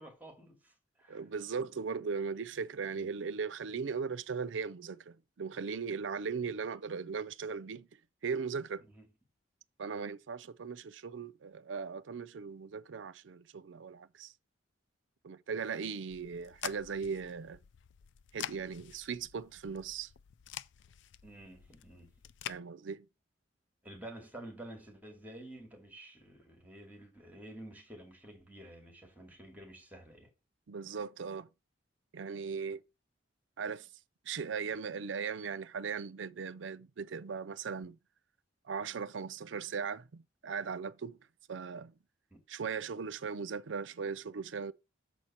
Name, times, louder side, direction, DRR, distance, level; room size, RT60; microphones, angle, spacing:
voice 1, 0.0-1.2 3.0-3.1 8.9-9.0 21.2-22.1 23.8-30.3 42.3-42.4, right 1 dB, 10° right, 2.4 m, -50 dB
voice 2, 1.1-7.9 8.2-8.9 9.8-14.3 15.2-17.6 18.3-20.1 22.5-23.1 30.7-31.5 32.1-32.8 33.6-33.9 34.2-38.0 38.6-41.9 42.5-44.7, right 5 dB, 75° right, 0.5 m, -38 dB
sound 1, 16.1-22.6, left 10 dB, 70° left, 0.4 m, -47 dB
7.1 x 4.4 x 5.8 m
head